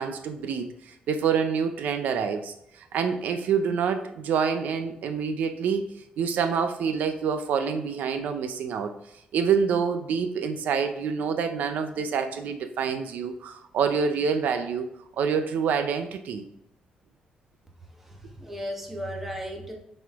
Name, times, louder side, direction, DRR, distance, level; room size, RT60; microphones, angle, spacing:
voice 1, 0.0-5.9 6.2-8.9 9.3-14.9 15.2-16.4, right 6 dB, 80° right, 8 dB, 0.6 m, -27 dB
voice 2, 18.0-19.8, equal, 10° right, 1 dB, 1.2 m, -35 dB
7.3 x 4.4 x 3.5 m, 0.78 s
cardioid pair, 145°, 3 cm